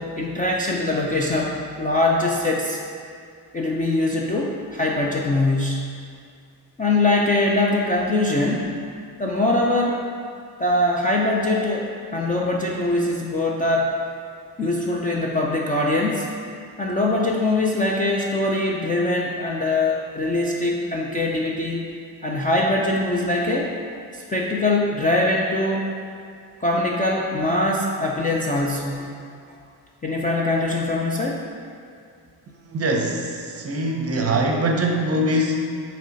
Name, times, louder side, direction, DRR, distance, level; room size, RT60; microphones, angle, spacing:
voice 1, 0.0-2.8 3.5-5.8 6.8-8.7 9.2-10.0 10.6-13.9 14.6-16.3 16.8-21.9 22.2-23.7 24.1-25.9 26.6-29.1 29.5-29.6 30.0-31.4, left 2 dB, 20° left, -2 dB, 0.4 m, -22 dB
voice 2, 32.6-35.5, right 1 dB, 35° right, 1 dB, 0.7 m, -23 dB
8.9 x 3.2 x 3.9 m, 2.2 s
cardioid pair, 155°, 42 cm